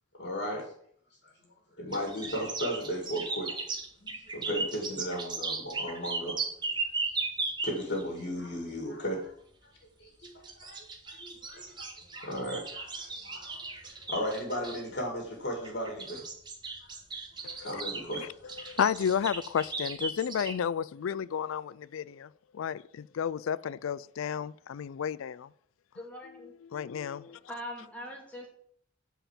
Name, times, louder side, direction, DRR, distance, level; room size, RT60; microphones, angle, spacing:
voice 1, 0.2-0.7 1.2-1.3 1.8-3.6 4.0-6.4 7.0-7.2 7.6-9.3 10.0-10.8 11.1-16.2 17.6-18.7, equal, 50° left, 2.2 m, -36 dB
sound 1, 1.9-8.0 10.2-14.8 15.6-20.5, right 3 dB, 20° right, 1.3 m, -36 dB
voice 2, 17.4-17.8 18.2-25.5 26.7-27.4, left 8 dB, 80° left, 0.4 m, -32 dB
voice 3, 25.9-26.5 27.3-28.5, equal, 5° left, 2.2 m, -42 dB
8.9 x 4.6 x 7.3 m
head